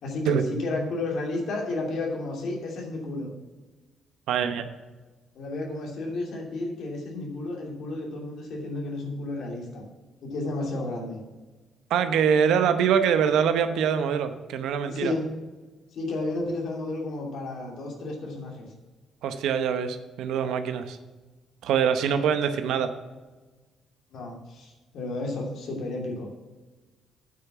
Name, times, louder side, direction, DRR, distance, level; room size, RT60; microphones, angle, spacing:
voice 1, 0.0-3.3 5.3-9.8 10.2-11.2 14.9-15.3 15.9-18.7 24.1-26.3, left 2 dB, 75° left, 0 dB, 2.7 m, -32 dB
voice 2, 4.3-4.6 11.9-15.1 19.2-21.0 21.6-22.9, right 7 dB, 85° right, 9 dB, 0.8 m, -24 dB
8.9 x 6.0 x 7.1 m, 1.2 s
cardioid pair, 90°, 0 cm